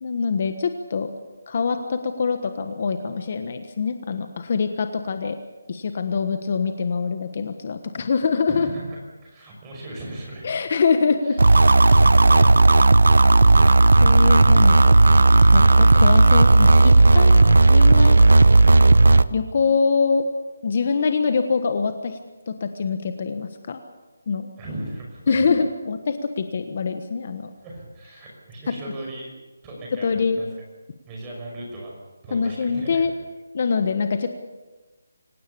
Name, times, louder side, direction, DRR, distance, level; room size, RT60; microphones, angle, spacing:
voice 1, 0.0-1.1 1.5-5.4 5.7-8.7 10.4-11.4 14.0-15.0 15.5-17.4 17.7-18.2 19.3-20.3 20.6-22.2 22.5-23.8 24.3-24.5 25.3-27.5 29.9-30.4 32.3-33.1 33.5-34.3, left 5 dB, 40° left, 8 dB, 1.3 m, -24 dB
voice 2, 8.5-10.5 11.3-11.6 12.0-12.9 24.6-25.5 27.6-29.3 29.6-30.5 31.1-31.9 32.2-33.1, right 1 dB, 15° right, -2 dB, 5.9 m, -37 dB
sound 1, 11.4-19.2, right 2 dB, 85° right, 0.9 m, -13 dB
26.0 x 17.0 x 7.0 m, 1.2 s
hypercardioid pair, 170°, 0 cm